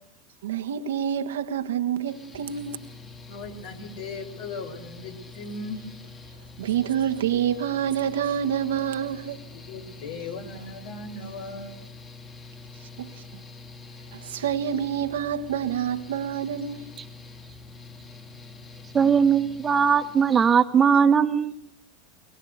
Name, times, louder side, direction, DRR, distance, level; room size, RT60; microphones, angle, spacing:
voice 1, 0.4-2.8 6.6-9.4 10.5-10.6 13.0-13.1 14.1-16.9, right 9 dB, 80° right, 1.6 m, -27 dB
Mechanical fan, 2.1-20.5, left 3 dB, 25° left, 3.6 m, -45 dB
voice 2, 3.3-5.8 9.7-11.7, left 3 dB, 65° left, 5.7 m, -37 dB
voice 3, 18.9-21.6, right 6 dB, 25° right, 1.6 m, -19 dB
22.5 x 22.5 x 8.1 m
hypercardioid pair, 95°, 0 cm